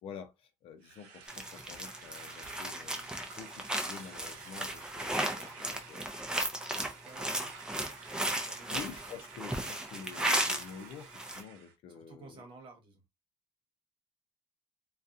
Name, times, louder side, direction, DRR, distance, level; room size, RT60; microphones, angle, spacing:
voice 1, 0.0-3.1 3.4-6.1 6.4-6.8 8.1-12.4, left 7 dB, 60° left, 0.6 m, -48 dB
sound 1, 0.8-11.8, right 6 dB, 90° right, 0.6 m, -53 dB
sound 2, 1.3-10.7 11.0-11.4, right 1 dB, 5° right, 0.6 m, -35 dB
voice 2, 6.7-7.5 7.8-8.8 11.9-13.0, right 3 dB, 50° right, 1.1 m, -54 dB
2.3 x 2.3 x 2.6 m
cardioid pair, 105°, 11 cm